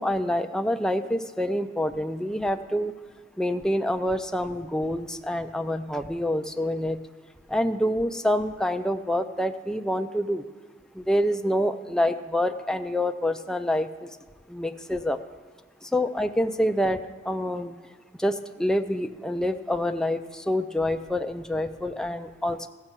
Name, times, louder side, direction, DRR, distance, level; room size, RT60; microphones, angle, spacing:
voice 1, 0.0-2.9 3.4-7.0 7.5-10.4 11.0-13.9 14.5-15.2 15.9-17.0 17.3-17.7 18.2-18.3 18.6-22.7, left 1 dB, 5° left, 6 dB, 0.4 m, -26 dB
15.0 x 6.5 x 6.1 m, 1.4 s
head